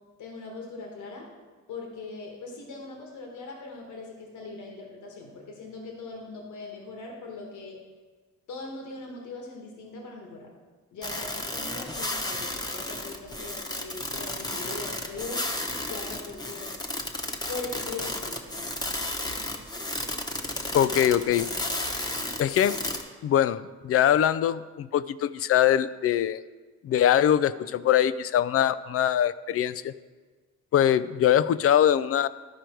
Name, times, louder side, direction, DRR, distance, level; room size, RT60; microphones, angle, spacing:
voice 1, 0.2-1.3 1.7-7.8 8.5-10.5 10.9-15.4 15.9-16.7 17.4-18.5, left 3 dB, 75° left, 0 dB, 1.7 m, -40 dB
sound 1, 11.0-23.0, left 1 dB, 15° left, 1.0 m, -33 dB
voice 2, 20.7-21.5 22.4-22.8 23.2-26.4 26.8-29.9 30.7-32.3, left 10 dB, 50° left, 16 dB, 0.4 m, -22 dB
13.0 x 5.0 x 4.5 m, 1.4 s
cardioid pair, 90°, 30 cm